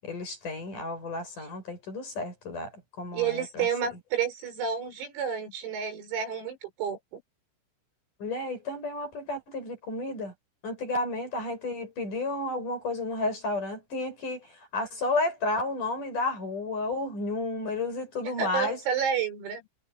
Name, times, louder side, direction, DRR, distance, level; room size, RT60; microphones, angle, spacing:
voice 1, 0.0-2.7 3.0-3.7 8.2-10.3 10.6-14.5 14.7-18.8, left 2 dB, 40° left, 8.6 m, -32 dB
voice 2, 3.1-7.2 18.4-19.6, right 7 dB, 85° right, 9.3 m, -30 dB
omnidirectional pair, 6.0 m